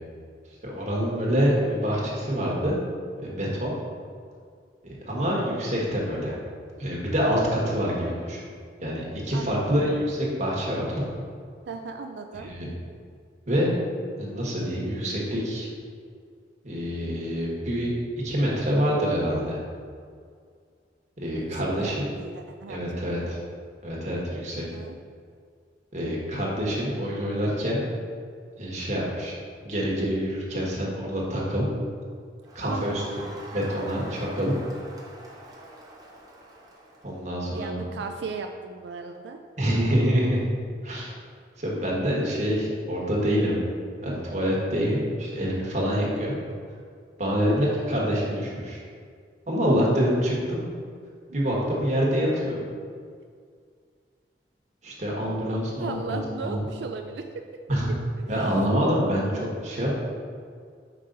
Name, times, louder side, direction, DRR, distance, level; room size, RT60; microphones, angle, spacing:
voice 1, 0.6-2.8 3.2-3.7 4.8-6.3 6.8-8.5 8.8-11.1 12.3-12.7 13.5-13.7 14.2-15.7 16.6-17.9 18.2-19.6 21.2-22.1 22.7-23.4 23.8-24.7 25.9-27.9 28.6-29.3 29.6-31.6 32.5-34.5 37.0-37.8 39.6-40.4 40.8-41.2 41.6-43.6 44.0-46.3 47.2-48.8 49.5-50.6 51.3-52.6 54.8-56.6 57.7-57.9 58.3-60.0, equal, 40° right, -4 dB, 1.4 m, -26 dB
voice 2, 9.3-9.9 11.7-12.5 21.3-21.4 21.8-23.3 24.5-25.0 32.6-33.3 37.5-39.4 47.5-47.9 55.5-57.4 58.2-58.3, right 4 dB, 75° right, 5 dB, 0.4 m, -37 dB
Crowd, 32.4-37.2, right 1 dB, 20° right, 1.0 m, -44 dB
5.3 x 5.3 x 3.9 m, 2.1 s
head